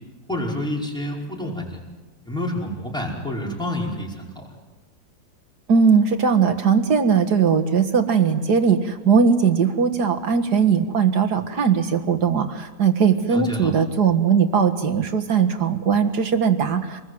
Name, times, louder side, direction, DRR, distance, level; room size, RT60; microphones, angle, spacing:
voice 1, 0.3-1.8 2.2-4.5 13.3-13.7, left 1 dB, ahead, -2 dB, 5.2 m, -28 dB
voice 2, 5.7-17.0, right 6 dB, 60° right, 7 dB, 2.2 m, -19 dB
27.0 x 20.5 x 7.9 m, 1.3 s
omnidirectional pair, 2.0 m